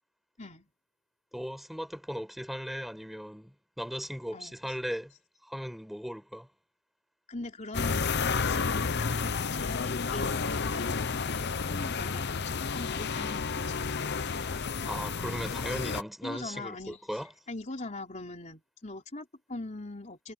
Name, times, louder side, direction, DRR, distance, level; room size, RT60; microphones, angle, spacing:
voice 1, 0.4-0.7 4.3-4.6 7.3-14.0 16.2-17.0 17.5-20.3, left 2 dB, 35° left, 3.8 m, -42 dB
voice 2, 1.3-5.1 5.4-6.5 14.8-17.3, equal, ahead, 5.8 m, -37 dB
sound 1, 7.7-16.0, left 5 dB, 50° left, 0.8 m, -31 dB
head